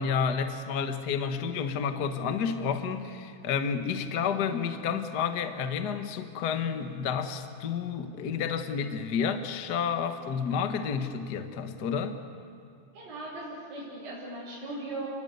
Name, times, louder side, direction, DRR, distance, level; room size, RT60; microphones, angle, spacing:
voice 1, 0.0-12.2, left 6 dB, 85° left, 7 dB, 0.9 m, -30 dB
voice 2, 12.9-15.1, right 2 dB, 70° right, -8 dB, 6.9 m, -38 dB
29.5 x 20.5 x 8.2 m, 2.4 s
omnidirectional pair, 4.1 m